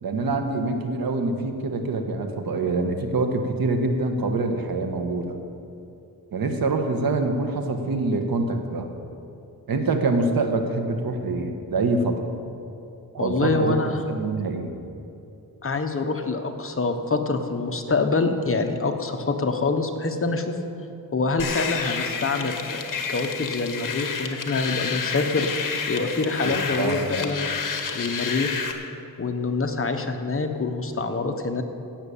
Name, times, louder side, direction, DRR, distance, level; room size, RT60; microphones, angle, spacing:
voice 1, 0.0-5.4 6.3-8.9 9.7-12.3 13.1-14.7 26.4-27.2, right 3 dB, 65° right, 5 dB, 1.4 m, -25 dB
voice 2, 13.2-14.0 15.6-20.6 21.1-25.5 25.9-27.5 27.9-28.7 29.2-31.6, left 3 dB, 35° left, 5 dB, 1.1 m, -25 dB
sound 1, 21.4-28.7, left 6 dB, 55° left, 1.4 m, -30 dB
16.5 x 6.6 x 8.5 m, 2.7 s
wide cardioid pair, 115°, 38 cm